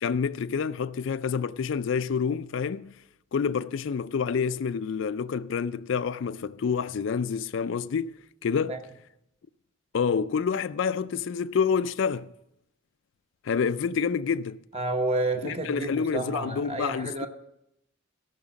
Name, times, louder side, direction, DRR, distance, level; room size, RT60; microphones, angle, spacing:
voice 1, 0.0-3.0 3.3-8.8 9.9-12.3 13.4-14.6 15.4-17.3, left 6 dB, 65° left, 0.4 m, -28 dB
voice 2, 14.7-17.3, right 2 dB, 30° right, 1.0 m, -30 dB
16.5 x 5.9 x 7.3 m
head